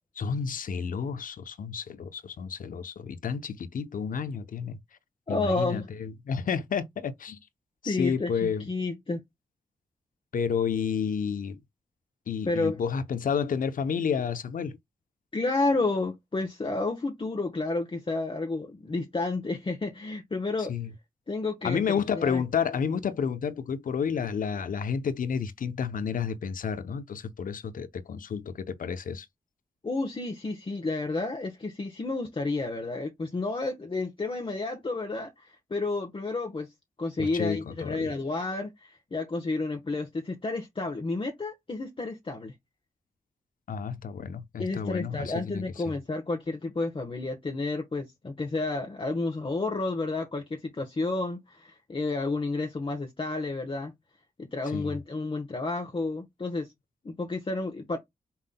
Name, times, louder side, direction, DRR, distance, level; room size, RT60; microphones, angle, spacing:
voice 1, 0.2-4.8 5.3-7.4 7.8-8.7 10.3-11.6 12.3-14.8 20.7-20.9 21.6-29.3 37.2-38.1 43.7-45.6 54.7-55.0, left 6 dB, 65° left, 0.7 m, -30 dB
voice 2, 5.3-5.9 7.8-9.2 12.4-12.8 15.3-20.7 21.3-21.8 22.1-22.4 29.8-36.7 37.0-42.5 44.6-53.9 54.4-56.7 57.0-58.0, left 3 dB, 35° left, 1.1 m, -31 dB
5.7 x 3.7 x 2.2 m
supercardioid pair, 40°, 15 cm